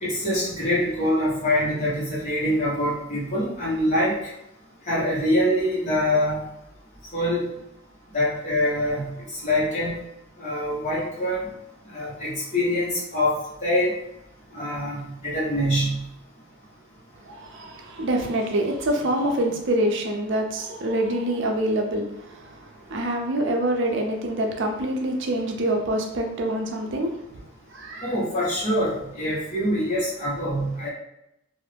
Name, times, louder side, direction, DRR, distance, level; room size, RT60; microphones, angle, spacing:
voice 1, 0.0-4.1 4.9-6.4 7.1-7.4 8.1-10.0 10.4-11.4 11.9-13.3 13.6-13.9 14.5-16.0 28.0-30.9, left 1 dB, 35° left, -7 dB, 1.2 m, -24 dB
voice 2, 17.2-27.3 27.7-28.1, right 1 dB, 60° right, 2 dB, 0.5 m, -26 dB
2.6 x 2.5 x 3.4 m, 0.84 s
head